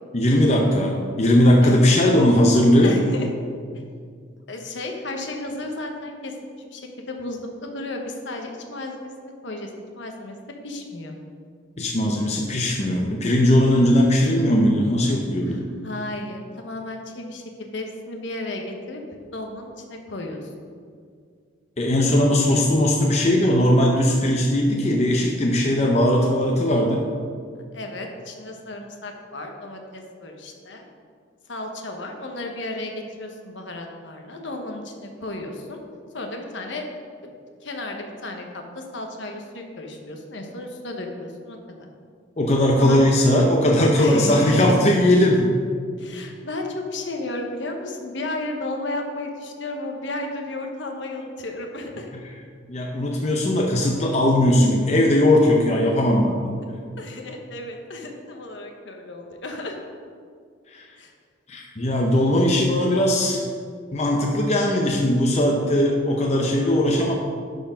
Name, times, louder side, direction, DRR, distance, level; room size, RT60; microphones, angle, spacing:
voice 1, 0.1-3.0 11.8-15.6 21.8-27.0 42.4-45.5 52.7-56.6 60.7-60.9 61.5-63.4 63.9-67.1, left 1 dB, 35° left, 0 dB, 0.7 m, -19 dB
voice 2, 2.8-3.3 4.5-9.7 10.0-10.4 10.6-11.2 15.5-19.0 19.3-20.5 27.7-30.8 31.5-35.8 36.1-36.8 37.2-41.9 42.8-43.0 44.0-44.8 46.0-52.1 57.0-59.8 61.0-61.1, left 2 dB, 65° left, 3 dB, 1.1 m, -33 dB
11.5 x 4.5 x 5.1 m, 2.1 s
head